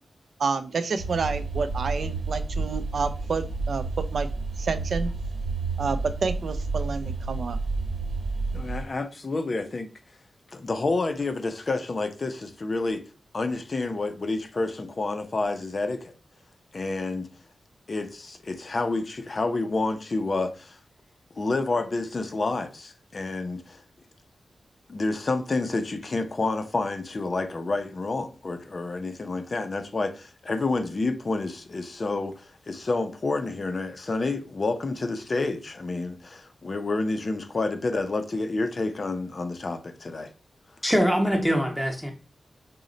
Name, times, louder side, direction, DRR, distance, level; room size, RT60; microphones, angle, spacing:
voice 1, 0.4-3.8 4.1-4.3 4.6-5.1 5.8-7.6, right 4 dB, 65° right, 0.3 m, -29 dB
sound 1, 1.0-8.8, right 3 dB, 80° right, 1.0 m, -30 dB
voice 2, 8.5-9.9 10.5-13.0 13.3-16.1 16.7-17.3 17.9-20.8 21.4-23.8 24.9-40.3, left 3 dB, 35° left, 0.4 m, -29 dB
voice 3, 40.8-42.1, equal, ahead, 0.7 m, -23 dB
3.9 x 2.1 x 3.8 m
wide cardioid pair, 160°, 0 cm